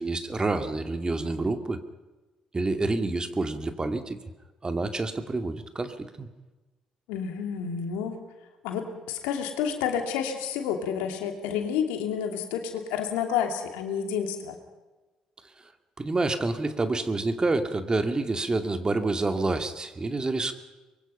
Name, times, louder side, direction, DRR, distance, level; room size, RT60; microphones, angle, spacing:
voice 1, 0.0-1.8 2.5-4.2 4.6-6.3 16.0-20.5, right 2 dB, 30° right, 7 dB, 2.4 m, -28 dB
voice 2, 7.1-8.2 8.6-14.6, left 7 dB, 80° left, 4 dB, 2.7 m, -30 dB
24.5 x 22.5 x 5.7 m, 1.2 s
hypercardioid pair, 55°, 3 cm